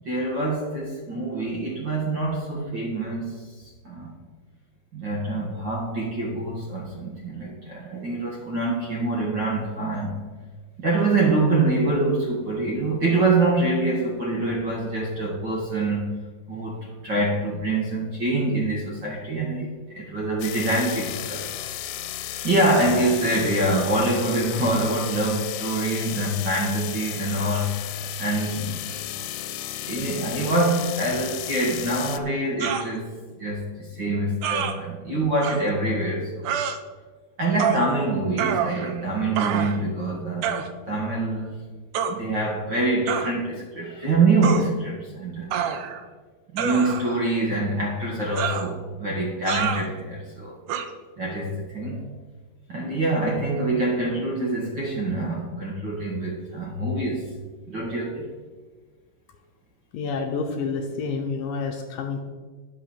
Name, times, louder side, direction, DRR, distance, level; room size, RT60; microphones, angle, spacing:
voice 1, 0.0-4.1 4.9-10.2 10.8-16.0 16.5-21.5 22.4-27.8 28.2-28.8 29.8-33.1 33.4-36.5 37.4-40.5 40.9-41.6 42.1-45.5 46.5-50.6 51.2-52.0 52.7-57.3 57.7-58.3, right 2 dB, 45° right, -3 dB, 1.5 m, -25 dB
sound 1, 20.4-32.2, left 13 dB, 90° left, 2.6 m, -34 dB
sound 2, 32.6-32.9 34.4-34.7 35.4-35.6 36.4-36.8 37.6-37.9 38.4-39.0 39.4-39.8 40.4-40.7 41.9-42.2 43.1-43.3 44.4-44.7 45.5-46.1 46.6-47.2 48.4-48.7 49.5-49.9 50.7-50.9, right 8 dB, 80° right, 1.8 m, -27 dB
voice 2, 59.9-62.2, left 4 dB, 70° left, 3 dB, 2.3 m, -28 dB
11.0 x 6.2 x 7.2 m, 1.4 s
omnidirectional pair, 4.5 m